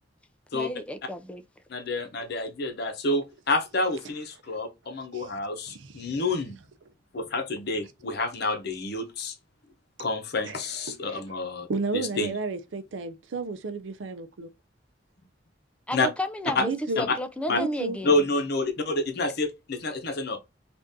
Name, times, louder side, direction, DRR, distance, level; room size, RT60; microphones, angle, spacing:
voice 1, 0.5-1.4 15.9-16.7 17.0-18.2, left 1 dB, 5° left, 0.3 m, -32 dB
voice 2, 1.7-6.6 7.1-9.3 10.0-11.7 11.9-12.3 15.9-16.1 16.5-16.6 17.0-17.2 17.5-17.6 18.0-20.4, left 2 dB, 60° left, 0.7 m, -28 dB
voice 3, 5.7-6.1 10.4-10.6 10.9-11.2 11.7-14.5 16.6-17.0 17.5-18.0, right 3 dB, 90° right, 0.5 m, -32 dB
3.6 x 2.5 x 2.6 m
head